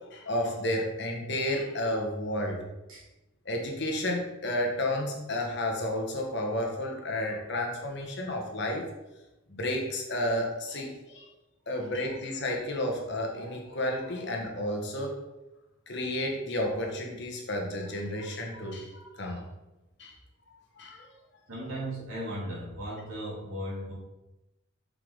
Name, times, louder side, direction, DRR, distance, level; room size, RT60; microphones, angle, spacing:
voice 1, 0.1-2.6 3.4-8.9 9.5-11.3 11.7-15.1 15.9-19.4 20.0-20.1 20.8-21.0, left 1 dB, 55° left, 0 dB, 1.4 m, -31 dB
voice 2, 21.5-23.9, right 1 dB, 75° right, -4 dB, 2.7 m, -37 dB
6.5 x 5.7 x 4.0 m, 0.98 s
head